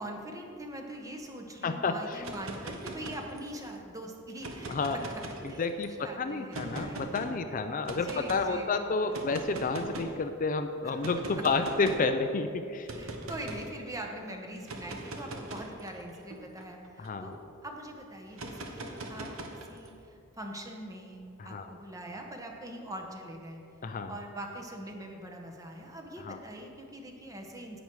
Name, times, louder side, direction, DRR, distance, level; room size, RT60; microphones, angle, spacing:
voice 1, 0.0-5.6 6.0-7.0 7.9-9.3 10.8-11.0 12.9-17.3 17.6-19.3 19.6-27.8, right 1 dB, 15° right, 2 dB, 1.1 m, -43 dB
voice 2, 1.6-2.2 4.7-5.0 5.6-12.9 17.0-17.3 21.4-21.7 23.8-24.1 26.2-26.4, left 3 dB, 40° left, 8 dB, 0.4 m, -30 dB
sound 1, 2.1-3.7 4.3-5.8 6.5-7.3 7.9-8.4 9.1-10.2 11.0-12.1 12.9-13.7 14.6-17.4 18.3-19.9, right 2 dB, 80° right, 1.1 m, -41 dB
10.5 x 8.7 x 4.7 m, 2.5 s
head